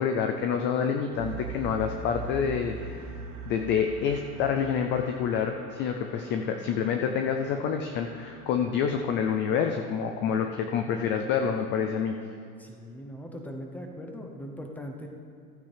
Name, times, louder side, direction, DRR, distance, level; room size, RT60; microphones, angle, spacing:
voice 1, 0.0-3.0 3.5-12.1, left 7 dB, 25° left, 5 dB, 0.4 m, -27 dB
sound 1, 1.1-9.1, right 4 dB, 75° right, 1.9 m, -42 dB
voice 2, 12.6-15.1, equal, 5° left, 2 dB, 0.8 m, -40 dB
15.0 x 8.9 x 3.4 m, 2.5 s
supercardioid pair, 130°, 45 cm